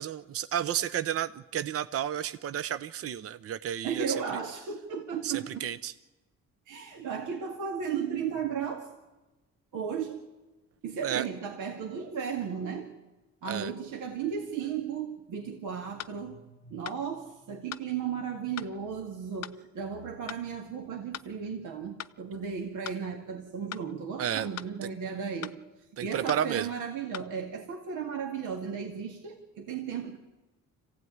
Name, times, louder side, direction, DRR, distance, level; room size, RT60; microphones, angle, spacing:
voice 1, 0.0-4.1 5.2-5.9 11.0-11.2 13.5-13.7 24.2-24.5 24.8-24.9 26.0-26.7, right 10 dB, 50° right, 13 dB, 0.7 m, -32 dB
voice 2, 3.8-5.7 6.7-9.0 9.7-10.2 10.8-12.9 13.4-25.5 26.0-30.2, right 7 dB, 85° right, 2 dB, 2.1 m, -35 dB
sound 1, 16.0-16.2 16.9-17.0 17.7-17.9 18.6-18.7 19.4-19.6 20.3-20.4 21.1-21.3 22.0-22.2 22.8-23.0 23.7-23.9 24.6-24.7 25.4-25.6 26.3-26.5 27.1-27.3, left 11 dB, 60° left, 0.7 m, -40 dB
25.5 x 16.0 x 9.5 m, 1.1 s
cardioid pair, 90°, 30 cm